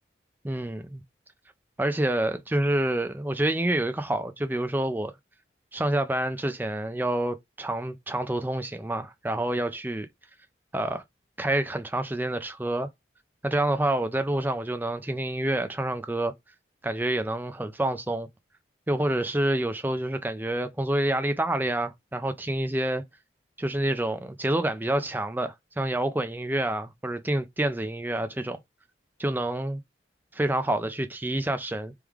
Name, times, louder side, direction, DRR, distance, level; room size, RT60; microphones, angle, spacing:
voice 1, 0.4-1.0 1.8-5.1 5.7-10.1 10.7-11.0 11.4-12.9 13.4-16.3 16.8-18.3 18.9-23.0 23.6-28.6 29.2-29.8 30.3-31.9, right 1 dB, 10° right, 0.4 m, -28 dB
3.6 x 3.2 x 3.5 m
head